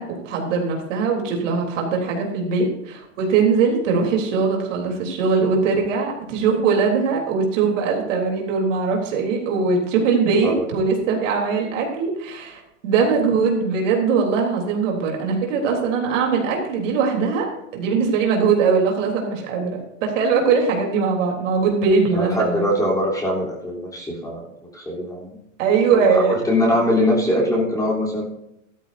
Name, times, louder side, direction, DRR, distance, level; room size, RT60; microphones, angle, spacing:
voice 1, 0.0-17.5 17.7-22.7 25.6-26.4, right 5 dB, 70° right, 0 dB, 3.6 m, -21 dB
voice 2, 22.1-25.4 25.9-28.3, left 1 dB, 10° left, -3 dB, 3.5 m, -22 dB
13.5 x 13.0 x 2.7 m, 0.82 s
hypercardioid pair, 130°, 39 cm